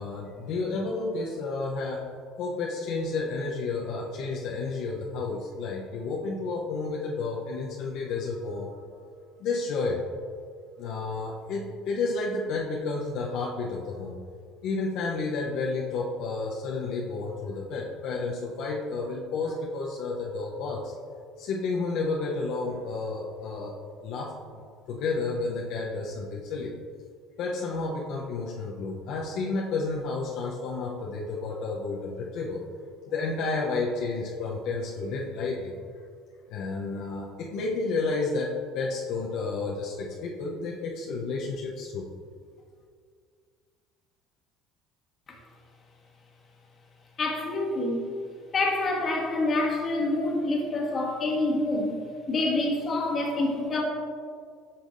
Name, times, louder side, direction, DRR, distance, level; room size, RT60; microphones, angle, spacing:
voice 1, 0.0-2.0 2.4-8.8 9.4-10.0 10.8-14.2 14.6-20.9 21.4-23.8 24.0-26.7 27.4-32.6 33.1-35.7 36.5-42.1, left 3 dB, 70° left, -2 dB, 0.7 m, -31 dB
voice 2, 47.2-48.1 48.5-52.0 52.3-53.8, left 2 dB, 40° left, 0 dB, 1.4 m, -27 dB
8.5 x 5.6 x 2.6 m, 2.1 s
supercardioid pair, 90°, 0 cm